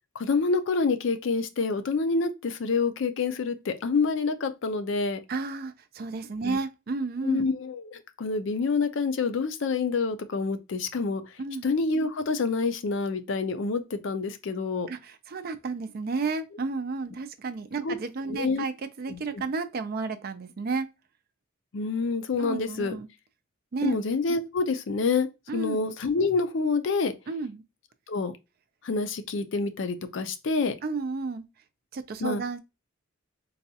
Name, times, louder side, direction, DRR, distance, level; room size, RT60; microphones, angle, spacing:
voice 1, 0.1-5.2 6.4-6.6 7.2-11.2 11.6-14.9 17.8-18.0 18.3-18.6 19.1-19.2 21.7-23.0 23.8-25.3 25.5-27.1 28.1-28.3 28.8-30.8 32.2-32.4, left 4 dB, 65° left, 0.4 m, -27 dB
voice 2, 5.3-7.5 11.4-11.7 14.9-20.9 22.4-23.1 23.7-24.0 25.5-25.8 27.3-27.6 30.8-31.4 31.9-32.6, right 4 dB, 50° right, 0.4 m, -32 dB
3.9 x 2.3 x 2.7 m
head